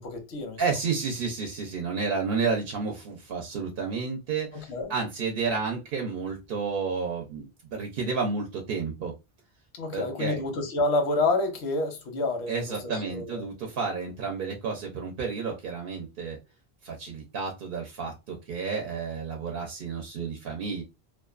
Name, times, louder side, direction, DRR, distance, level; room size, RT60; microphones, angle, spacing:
voice 1, 0.0-0.6 4.5-4.9 9.8-12.7 13.1-13.5, left 2 dB, 85° left, 1.0 m, -28 dB
voice 2, 0.6-9.1 9.9-10.4 12.5-16.4 16.8-20.8, right 5 dB, 65° right, 0.7 m, -31 dB
2.5 x 2.2 x 2.3 m
omnidirectional pair, 1.1 m